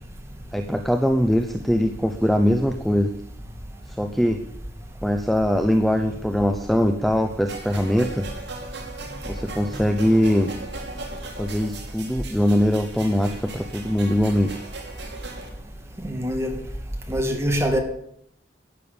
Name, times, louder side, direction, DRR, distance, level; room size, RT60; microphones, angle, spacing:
voice 1, 0.5-3.1 4.0-4.4 5.0-8.3 9.3-10.5 11.4-14.6, equal, ahead, 0.7 m, -22 dB
sound 1, 7.5-15.5, right 3 dB, 65° right, 3.0 m, -38 dB
voice 2, 16.0-16.6 17.1-17.8, equal, 15° right, 2.2 m, -24 dB
12.5 x 9.0 x 6.8 m
head